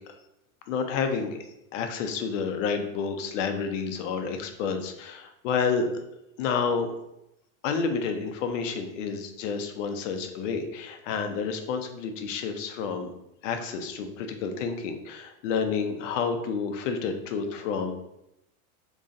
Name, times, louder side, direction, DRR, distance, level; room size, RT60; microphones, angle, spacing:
voice 1, 0.7-1.4 1.7-5.9 6.4-6.9 7.6-13.1 13.4-17.9, left 5 dB, 60° left, 6 dB, 0.6 m, -29 dB
3.8 x 3.0 x 2.6 m, 0.83 s
supercardioid pair, 160°, 42 cm